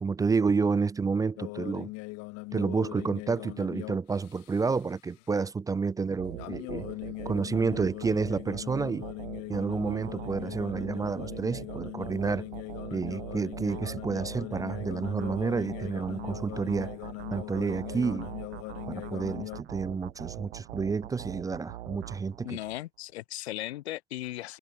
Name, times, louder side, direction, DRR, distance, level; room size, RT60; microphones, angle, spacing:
voice 1, 0.0-1.9 2.5-6.9 7.2-9.1 9.5-12.5 12.9-16.9 17.3-18.3 18.9-22.6, right 5 dB, 10° right, 0.5 m, -30 dB
sound 1, 1.4-4.9 6.4-19.6, left 26 dB, 50° left, 1.8 m, -40 dB
sound 2, 6.2-22.8, right 13 dB, 80° right, 1.0 m, -43 dB
voice 2, 22.4-24.6, left 15 dB, 80° left, 0.6 m, -37 dB
hypercardioid pair, 100°, 32 cm